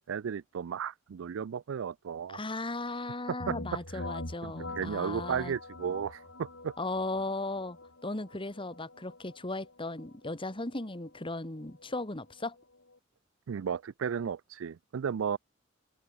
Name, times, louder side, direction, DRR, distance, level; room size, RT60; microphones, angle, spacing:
voice 1, 0.1-2.4 3.3-3.6 3.9-4.0 4.4-6.7 13.5-15.4, right 7 dB, 75° right, 0.4 m, -34 dB
voice 2, 2.3-5.5 6.8-7.8 8.0-12.6, left 2 dB, 25° left, 2.1 m, -36 dB
sound 1, 3.4-13.0, left 2 dB, 75° left, 5.6 m, -45 dB
open air
head